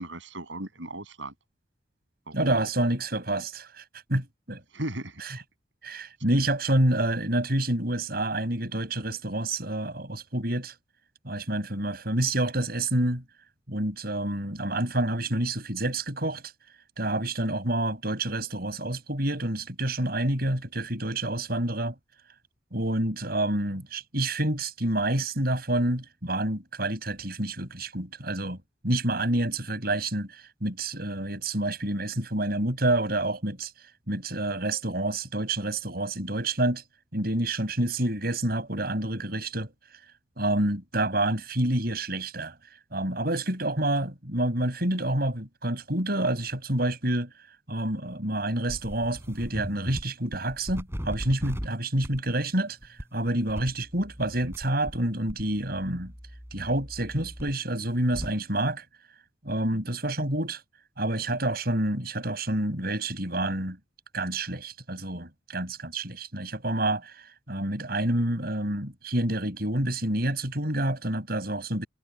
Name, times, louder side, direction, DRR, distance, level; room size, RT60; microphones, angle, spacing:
voice 1, 0.0-1.3 2.3-2.7 4.7-5.2 54.4-54.5, right 1 dB, 80° right, 7.7 m, -36 dB
voice 2, 2.3-3.8 4.1-4.6 5.2-5.4 5.8-10.8 11.2-13.2 13.7-16.4 17.0-22.0 22.7-28.6 28.8-33.7 34.1-36.8 37.1-39.7 40.4-42.6 42.9-47.3 47.7-56.1 56.5-58.8 59.4-60.6 61.0-63.8 64.1-71.9, right 1 dB, 55° right, 7.1 m, -28 dB
sound 1, 48.7-50.0 50.3-51.7 52.0-52.3 52.8-53.0 53.5-55.0 55.3-58.3, equal, 15° right, 5.7 m, -38 dB
head